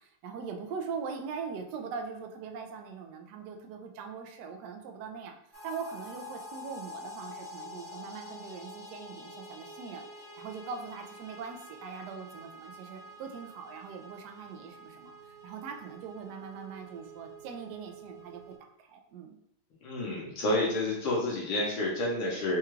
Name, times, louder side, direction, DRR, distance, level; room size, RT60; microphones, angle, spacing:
voice 1, 0.0-5.4 5.6-19.4, right 5 dB, 85° right, 4 dB, 0.9 m, -41 dB
sound 1, 5.5-18.6, equal, 45° left, 1.2 m, -47 dB
voice 2, 19.8-22.6, left 1 dB, 75° left, -4 dB, 1.7 m, -29 dB
4.5 x 2.3 x 3.1 m, 0.78 s
omnidirectional pair, 2.4 m